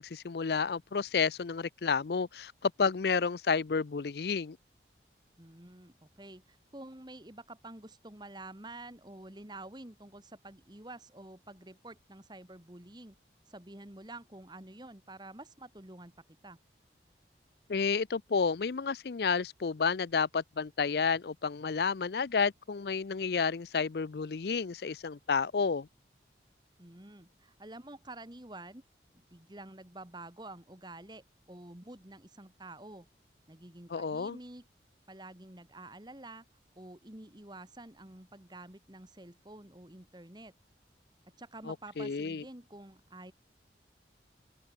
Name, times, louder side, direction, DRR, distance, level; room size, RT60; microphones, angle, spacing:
voice 1, 0.0-4.6 17.7-25.9 33.9-34.4 41.7-42.4, left 5 dB, 60° left, 0.5 m, -31 dB
voice 2, 5.4-13.2 13.5-16.1 16.4-16.6 26.8-28.8 29.1-33.1 33.5-34.7 35.1-36.5 36.8-40.5 41.4-43.3, right 2 dB, 25° right, 2.0 m, -49 dB
open air
head